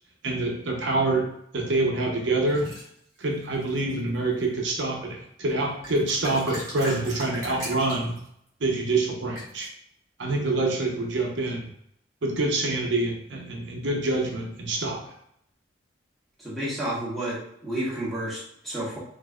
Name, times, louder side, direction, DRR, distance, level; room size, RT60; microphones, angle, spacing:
voice 1, 0.2-1.2 1.5-2.7 3.2-8.2 8.6-9.7 10.2-11.6 12.2-15.0, right 2 dB, 70° right, 0 dB, 0.7 m, -26 dB
sound 1, 2.5-2.9 3.6-4.1 5.5-5.6 5.8-8.3 9.3-9.7, equal, 15° right, 1.4 m, -37 dB
voice 2, 16.4-19.0, right 1 dB, ahead, -9 dB, 1.2 m, -31 dB
4.2 x 2.6 x 2.3 m, 0.72 s
head